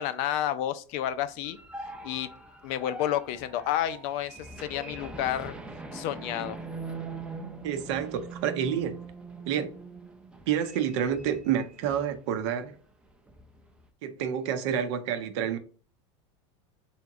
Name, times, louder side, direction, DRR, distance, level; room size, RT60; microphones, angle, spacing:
voice 1, 0.0-1.6 2.0-2.3 2.6-5.5 5.9-6.6, left 11 dB, 60° left, 0.5 m, -30 dB
sound 1, 1.2-12.2 12.5-12.7 13.1-13.8, right 3 dB, 5° right, 0.5 m, -42 dB
voice 2, 7.6-9.0 9.5-9.7 10.5-12.7 14.0-15.6, right 8 dB, 70° right, 0.7 m, -29 dB
3.5 x 3.0 x 3.7 m
supercardioid pair, 105°, 16 cm